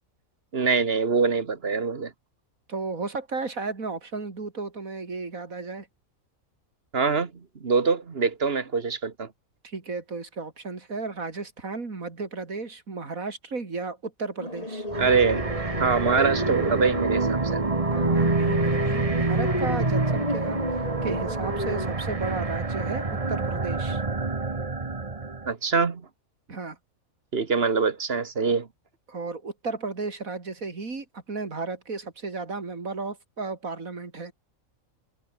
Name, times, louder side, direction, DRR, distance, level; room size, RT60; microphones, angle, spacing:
voice 1, 0.5-2.1 6.9-7.3 7.6-9.3 15.0-15.4 15.8-17.6 25.5-26.1 27.3-28.7, right 5 dB, 45° right, 1.6 m, -24 dB
voice 2, 2.7-5.9 9.6-14.9 17.9-24.0 26.5-26.8 29.1-34.3, right 4 dB, 80° right, 3.6 m, -34 dB
sound 1, 14.4-21.9, left 1 dB, 25° left, 5.1 m, -32 dB
sound 2, 14.9-25.5, right 3 dB, 25° right, 1.4 m, -27 dB
omnidirectional pair, 1.4 m